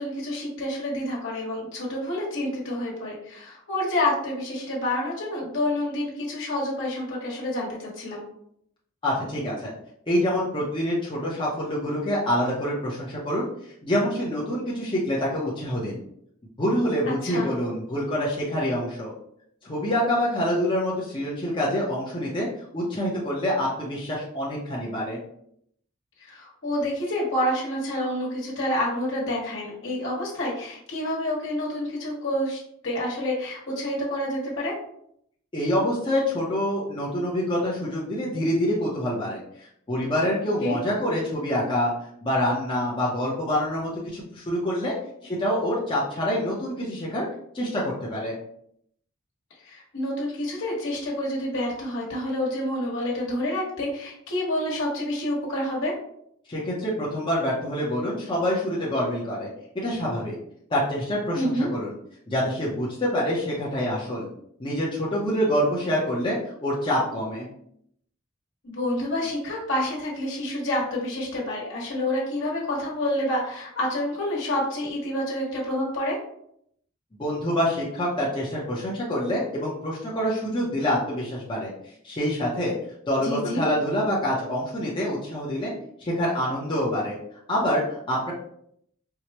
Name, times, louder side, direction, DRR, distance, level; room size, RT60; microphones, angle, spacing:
voice 1, 0.0-8.2 17.1-17.5 26.2-34.7 40.6-40.8 49.6-55.9 61.3-61.7 68.6-76.2 83.2-83.6, left 1 dB, 65° left, -4 dB, 1.2 m, -28 dB
voice 2, 9.0-9.7 10.1-13.5 13.8-16.0 16.6-19.1 19.6-22.5 22.7-25.2 35.5-39.4 39.9-41.9 42.2-44.9 45.2-47.3 47.5-48.4 56.5-59.5 59.7-60.4 60.7-61.9 62.3-64.3 64.6-67.5 77.1-81.7 82.0-82.7 83.1-85.7 86.0-87.2 87.5-88.3, equal, 25° left, -5 dB, 0.6 m, -26 dB
4.6 x 2.0 x 2.9 m, 0.71 s
head